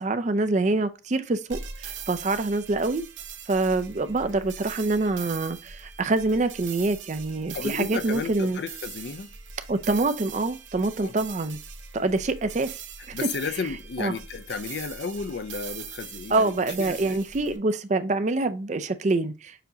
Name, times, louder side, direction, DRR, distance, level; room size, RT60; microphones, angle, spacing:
voice 1, 0.0-3.0 3.5-8.6 9.7-11.6 11.9-12.7 13.1-13.2 14.0-14.2 16.3-19.6, right 2 dB, 40° right, 0.4 m, -25 dB
sound 1, 1.5-17.6, right 6 dB, 75° right, 0.9 m, -41 dB
voice 2, 7.5-9.3 11.0-11.1 13.1-17.2, left 5 dB, 55° left, 0.4 m, -33 dB
6.8 x 2.8 x 2.6 m
head